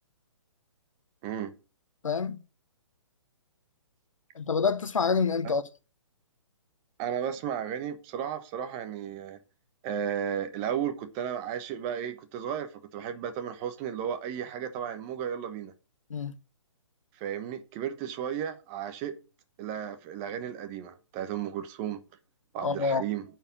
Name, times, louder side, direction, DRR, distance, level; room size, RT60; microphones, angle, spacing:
voice 1, 2.0-2.4 4.3-5.6 16.1-16.3 22.6-23.0, left 5 dB, 85° left, 0.9 m, -27 dB
voice 2, 7.0-9.4 9.8-15.7 17.2-19.2 19.6-22.0 22.5-23.2, right 9 dB, 25° right, 1.1 m, -34 dB
8.8 x 4.7 x 7.3 m
hypercardioid pair, 140°, 16 cm